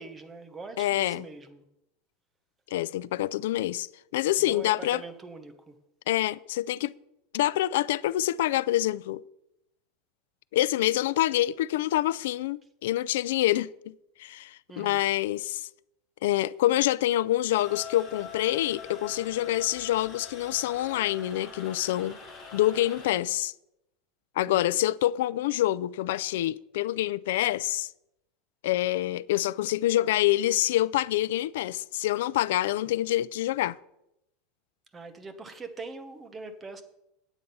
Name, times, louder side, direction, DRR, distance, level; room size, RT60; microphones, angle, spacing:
voice 1, 0.0-1.6 4.4-5.8 14.7-15.0 24.5-24.8 34.9-36.8, right 3 dB, 15° right, 0.9 m, -43 dB
voice 2, 0.8-1.3 2.7-3.9 4.1-5.0 6.1-6.9 7.3-9.2 10.5-13.9 14.2-15.7 16.2-22.2 22.5-23.5 24.4-27.9 28.6-33.8, left 14 dB, 75° left, 0.4 m, -26 dB
sound 1, 17.5-23.2, left 5 dB, 20° left, 3.5 m, -44 dB
9.1 x 8.5 x 5.4 m
supercardioid pair, 175°, 0 cm